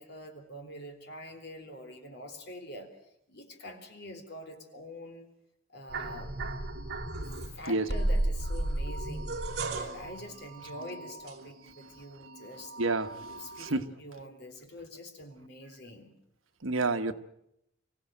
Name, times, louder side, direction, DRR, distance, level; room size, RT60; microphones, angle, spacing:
voice 1, 0.0-2.9 3.3-5.3 5.7-6.9 7.5-12.7 13.4-16.2, left 1 dB, 55° left, 5 dB, 3.7 m, -46 dB
sound 1, 5.9-7.5 7.9-11.9 12.2-13.7, right 2 dB, 55° right, 2.8 m, -34 dB
voice 2, 12.8-13.8 16.6-17.1, right 3 dB, 80° right, 9 dB, 1.3 m, -30 dB
25.5 x 15.5 x 9.1 m, 0.80 s
head